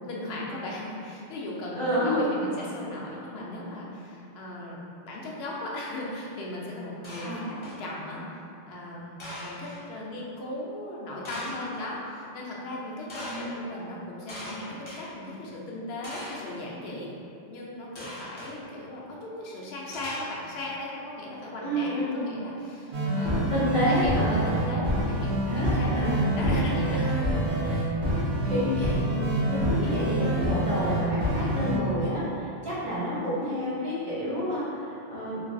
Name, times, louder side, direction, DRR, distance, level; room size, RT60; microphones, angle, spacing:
voice 1, 0.0-4.8 5.0-8.2 8.7-17.1 17.5-27.4 27.7-27.9, left 1 dB, 70° left, -4 dB, 0.8 m, -37 dB
voice 2, 1.7-2.3 7.2-7.5 13.2-13.6 21.6-22.3 23.5-24.4 25.5-26.2 28.4-35.4, equal, 30° right, -11 dB, 0.7 m, -29 dB
sound 1, 7.0-7.9 9.2-9.8 11.2-11.8 13.1-13.5 14.3-15.0 16.0-16.5 18.0-18.5 19.9-20.7, left 1 dB, 40° left, 0.4 m, -40 dB
sound 2, 22.9-31.8, right 1 dB, 70° right, 1.0 m, -26 dB
3.1 x 2.2 x 2.5 m, 2.6 s
omnidirectional pair, 1.2 m